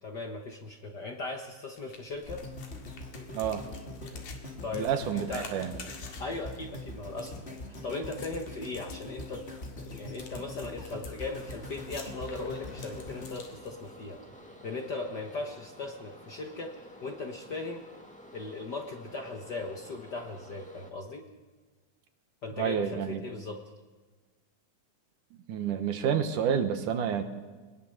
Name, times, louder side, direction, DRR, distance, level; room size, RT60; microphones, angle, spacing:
voice 1, 0.0-2.4 4.6-5.5 6.2-9.5 9.8-14.2 14.6-16.7 17.0-17.8 18.3-21.2 22.4-23.6, left 3 dB, 50° left, 3 dB, 1.4 m, -38 dB
sound 1, 1.7-14.2, left 5 dB, 75° left, 3.5 m, -51 dB
sound 2, 2.3-14.5 15.0-15.1, left 2 dB, 25° left, 2.1 m, -43 dB
voice 2, 3.3-3.6 4.7-5.7 22.6-23.2 25.5-27.2, right 8 dB, 85° right, 7 dB, 2.9 m, -29 dB
sound 3, 11.2-20.9, left 1 dB, 5° left, 0.9 m, -51 dB
21.5 x 20.0 x 6.6 m, 1.3 s
omnidirectional pair, 3.5 m